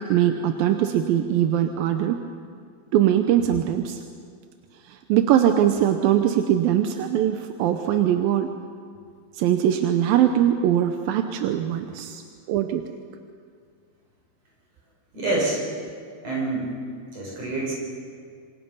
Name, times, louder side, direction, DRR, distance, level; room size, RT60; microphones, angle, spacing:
voice 1, 0.1-2.2 2.9-4.0 4.9-8.5 9.3-12.2 12.5-12.8, right 10 dB, 85° right, 6 dB, 2.6 m, -21 dB
voice 2, 15.1-15.6 16.2-16.7 17.1-17.7, right 2 dB, 45° right, -4 dB, 7.5 m, -26 dB
26.5 x 26.0 x 5.5 m, 2.1 s
omnidirectional pair, 4.0 m